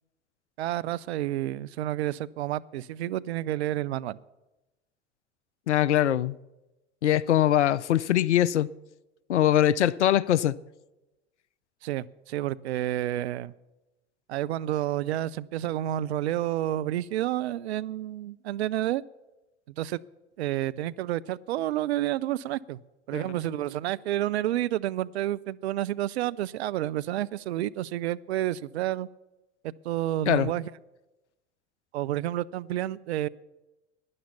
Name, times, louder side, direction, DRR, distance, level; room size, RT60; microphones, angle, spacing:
voice 1, 0.6-4.2 11.8-13.5 14.3-19.0 19.7-20.0 20.4-22.8 23.1-29.1 29.6-30.7 31.9-33.3, right 13 dB, 70° right, 0.5 m, -30 dB
voice 2, 5.7-6.4 7.0-8.7 9.3-10.5 23.1-23.3 30.3-30.5, left 12 dB, 80° left, 0.5 m, -22 dB
12.0 x 10.0 x 7.1 m
figure-of-eight pair, 70°, 34 cm